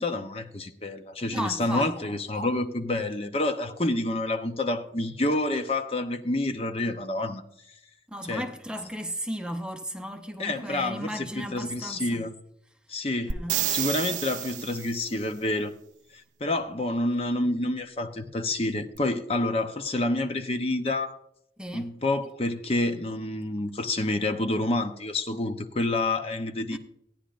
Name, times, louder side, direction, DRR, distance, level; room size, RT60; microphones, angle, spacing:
voice 1, 0.0-7.4 8.3-8.5 10.4-12.3 12.9-13.4 13.7-15.7 16.1-21.2 21.7-26.8, left 2 dB, 35° left, 0.7 m, -28 dB
voice 2, 1.3-1.9 8.1-12.3 13.3-13.7 21.6-21.9 26.7-26.8, equal, 5° right, 0.6 m, -35 dB
sound 1, 13.3-15.1 19.0-19.1, right 11 dB, 45° right, 0.3 m, -30 dB
16.5 x 10.0 x 2.5 m
head